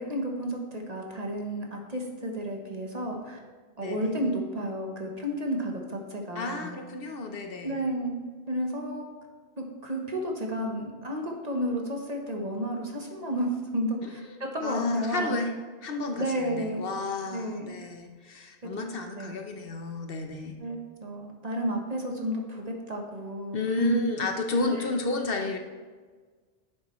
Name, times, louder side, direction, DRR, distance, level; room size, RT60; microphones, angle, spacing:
voice 1, 0.0-3.4 3.8-6.7 7.6-8.2 8.5-9.1 9.6-15.4 16.2-16.9 17.3-17.7 18.6-18.8 19.2-19.4 20.6-24.0 24.7-24.9, right 1 dB, 40° right, 1 dB, 1.1 m, -32 dB
voice 2, 3.8-4.1 6.3-7.8 14.6-15.5 15.8-20.5 23.5-25.6, left 3 dB, 60° left, 4 dB, 1.0 m, -31 dB
10.0 x 7.6 x 3.1 m, 1.5 s
omnidirectional pair, 1.1 m